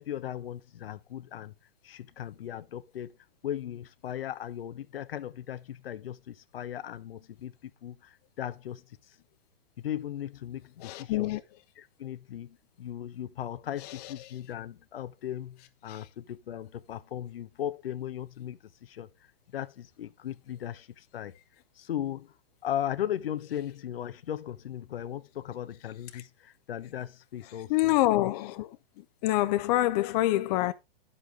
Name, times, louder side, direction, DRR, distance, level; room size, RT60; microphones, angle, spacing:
voice 1, 0.0-1.5 1.8-3.2 3.4-9.2 9.8-11.4 11.8-19.1 19.5-21.3 21.8-22.3 22.6-28.0, left 11 dB, 75° left, 0.9 m, -37 dB
voice 2, 10.8-11.4 13.8-14.1 15.9-16.0 26.1-26.2 27.7-28.8 29.2-30.7, left 16 dB, 40° left, 0.8 m, -26 dB
10.0 x 7.6 x 3.7 m
hypercardioid pair, 125°, 30 cm